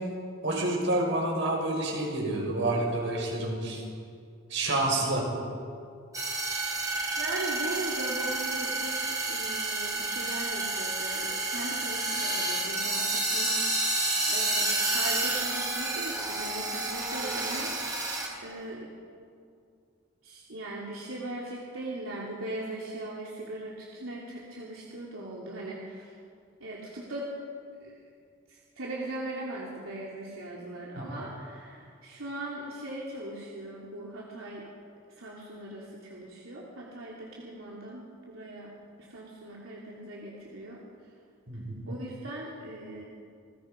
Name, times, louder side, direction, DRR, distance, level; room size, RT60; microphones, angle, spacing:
voice 1, 0.4-3.8 4.5-5.2 30.9-31.0 41.5-41.9, right 2 dB, 60° right, -1 dB, 6.2 m, -28 dB
sound 1, 6.1-18.3, right 2 dB, 15° right, 4.1 m, -30 dB
voice 2, 7.2-18.1 18.4-18.9 20.2-26.1 26.6-27.3 27.8-27.9 28.5-34.6 35.2-38.7 39.0-40.8 41.9-43.0, right 1 dB, 85° right, -4 dB, 3.2 m, -39 dB
29.0 x 20.0 x 5.3 m, 2.3 s
head